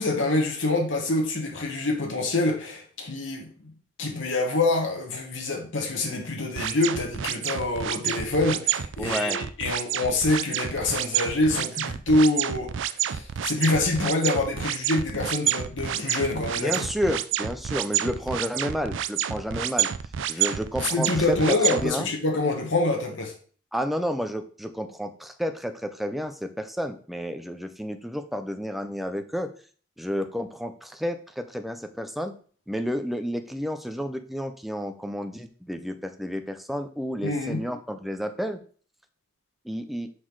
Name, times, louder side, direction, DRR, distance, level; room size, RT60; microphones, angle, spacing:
voice 1, 0.0-3.7 4.0-16.8 20.3-20.5 20.8-23.3 37.2-37.6, left 2 dB, 80° left, 1 dB, 1.5 m, -26 dB
sound 1, 6.6-21.9, right 11 dB, 75° right, 0.4 m, -29 dB
voice 2, 9.0-9.4 16.4-19.9 20.3-22.1 23.7-29.5 30.0-32.3 32.7-38.6 39.6-40.1, equal, ahead, 7 dB, 0.5 m, -31 dB
6.3 x 4.0 x 4.7 m, 0.43 s
head